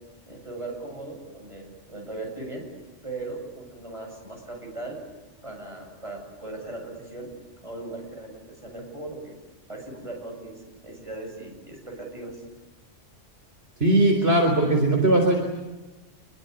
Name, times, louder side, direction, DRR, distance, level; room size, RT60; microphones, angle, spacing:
voice 1, 0.2-2.7 3.0-5.0 5.4-7.3 7.6-9.4 9.7-12.4, right 2 dB, 25° right, 1 dB, 7.8 m, -38 dB
voice 2, 13.8-15.3, right 1 dB, 55° right, 2 dB, 4.2 m, -19 dB
27.5 x 22.0 x 9.7 m, 1.1 s
omnidirectional pair, 1.3 m